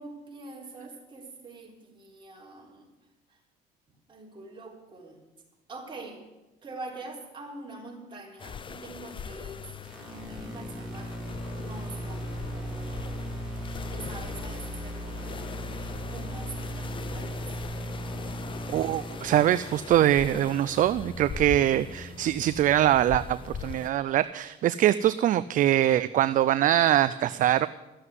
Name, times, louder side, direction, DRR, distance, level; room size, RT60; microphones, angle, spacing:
voice 1, 0.0-2.9 4.1-5.2 5.7-6.2 6.6-13.2 13.8-17.5, right 2 dB, 30° right, -1 dB, 3.9 m, -44 dB
sound 1, 8.4-23.9, left 6 dB, 30° left, 0.6 m, -41 dB
sound 2, 9.8-19.8, equal, 5° right, 3.5 m, -37 dB
voice 2, 18.7-27.7, right 12 dB, 50° right, 15 dB, 0.4 m, -23 dB
13.0 x 7.8 x 9.5 m, 1.1 s
cardioid pair, 110°, 17 cm